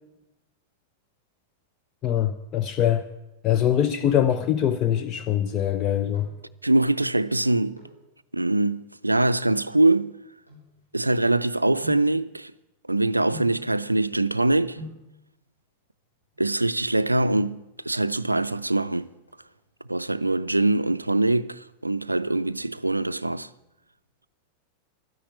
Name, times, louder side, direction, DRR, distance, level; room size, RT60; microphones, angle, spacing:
voice 1, 2.0-3.0 3.4-6.3, left 10 dB, 30° left, 0.6 m, -23 dB
sound 1, 4.8-5.2 5.9-6.5 7.7-8.1 8.8-11.2 11.8-12.2 13.3-13.7 14.5-14.6 14.8-15.1 16.2-16.8 17.1-17.2 17.4-17.5 17.9-18.3 18.6-19.6 20.1-20.5 20.9-22.0 22.3-22.4, left 2 dB, 85° left, 4.1 m, -44 dB
voice 2, 6.6-7.8 8.3-10.1 10.9-12.5 12.9-14.8 16.4-19.1 19.9-23.5, right 2 dB, 85° right, 0.4 m, -23 dB
12.0 x 10.0 x 8.7 m
figure-of-eight pair, 90°, 0 cm